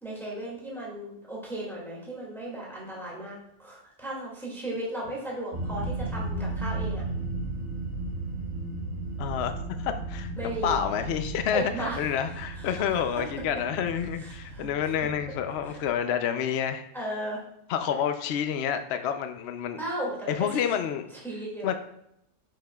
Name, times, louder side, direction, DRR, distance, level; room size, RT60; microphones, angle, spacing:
voice 1, 0.0-7.0 10.4-10.8 11.5-12.1 12.5-13.0 14.2-14.7 15.7-15.8 16.9-17.4 19.8-20.6 21.2-21.7, right 1 dB, ahead, -5 dB, 2.0 m, -35 dB
sound 1, 5.5-15.8, right 2 dB, 50° right, 1.7 m, -35 dB
voice 2, 9.2-16.8 17.7-19.8 20.3-21.0 21.6-21.7, left 8 dB, 65° left, 8 dB, 0.7 m, -29 dB
9.9 x 5.6 x 2.3 m, 0.78 s
omnidirectional pair, 1.5 m